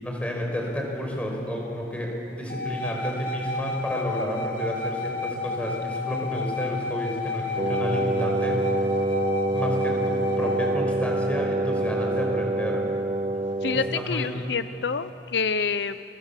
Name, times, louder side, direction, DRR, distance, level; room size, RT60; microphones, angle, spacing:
voice 1, 0.0-8.6 9.5-12.8 13.9-14.3, equal, 10° left, -1 dB, 5.5 m, -30 dB
sound 1, 2.5-10.7, left 3 dB, 55° left, 3.1 m, -32 dB
Wind instrument woodwind instrument, 7.5-14.1, right 2 dB, 35° right, 0.7 m, -26 dB
voice 2, 13.6-16.0, left 5 dB, 75° left, 12 dB, 0.7 m, -27 dB
29.5 x 24.5 x 7.4 m, 2.7 s
head